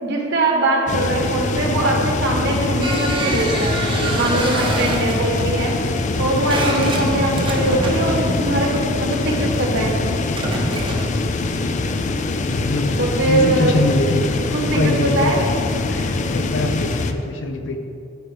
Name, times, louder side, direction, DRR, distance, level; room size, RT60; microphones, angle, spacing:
voice 1, 0.0-5.7 6.2-9.9 13.0-13.8 14.5-15.4, right 2 dB, 60° right, -1 dB, 1.3 m, -21 dB
sound 1, 0.9-17.1, left 3 dB, 40° left, 0.4 m, -23 dB
sound 2, 2.8-9.4 10.2-11.2, right 2 dB, 25° right, 0.9 m, -27 dB
voice 2, 12.5-12.9 13.2-14.2 14.7-15.4 15.9-17.8, left 2 dB, 70° left, 5 dB, 0.8 m, -23 dB
13.0 x 4.7 x 3.4 m, 2.6 s
head